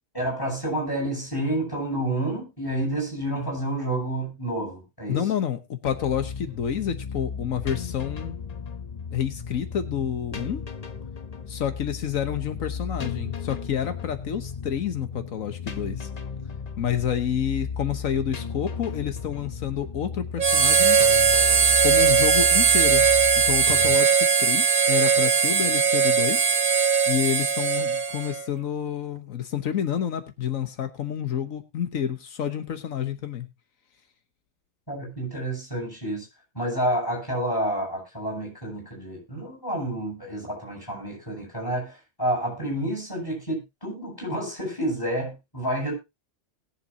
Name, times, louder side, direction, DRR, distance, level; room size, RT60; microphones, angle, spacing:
voice 1, 0.1-5.2 20.1-20.2 34.9-36.3 36.5-45.9, right 1 dB, 15° left, 8.0 m, -29 dB
voice 2, 5.1-8.4 9.1-10.6 11.5-16.1 16.8-21.0 21.8-23.1 23.5-26.5 27.1-33.5, left 8 dB, 85° left, 1.5 m, -29 dB
sound 1, 5.9-24.0, left 6 dB, 35° left, 0.8 m, -35 dB
Harmonica, 20.4-28.4, right 6 dB, 85° right, 1.8 m, -20 dB
20.5 x 7.4 x 2.8 m
omnidirectional pair, 1.4 m